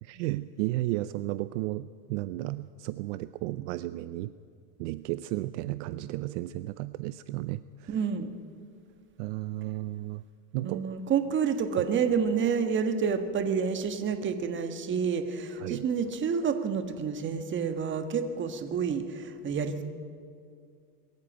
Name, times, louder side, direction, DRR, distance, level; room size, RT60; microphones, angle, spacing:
voice 1, 0.0-4.3 4.8-8.0 9.2-10.2 10.5-10.9 15.6-15.9, right 16 dB, 50° right, 15 dB, 0.5 m, -33 dB
voice 2, 7.9-8.3 10.6-19.8, right 6 dB, 25° right, 8 dB, 1.5 m, -29 dB
22.0 x 13.5 x 9.0 m, 2.3 s
supercardioid pair, 135°, 50 cm